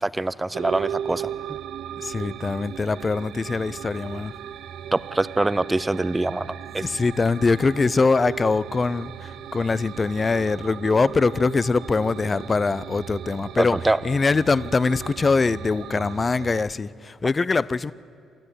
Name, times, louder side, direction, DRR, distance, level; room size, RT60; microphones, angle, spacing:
voice 1, 0.0-1.3 4.9-6.8 13.6-14.0, right 2 dB, 15° right, 0.6 m, -24 dB
sound 1, 0.5-16.6, right 10 dB, 80° right, 0.6 m, -36 dB
voice 2, 2.0-4.3 6.8-13.8 14.0-17.9, left 4 dB, 30° left, 0.6 m, -23 dB
28.5 x 13.5 x 9.9 m
cardioid pair, 90°, 0 cm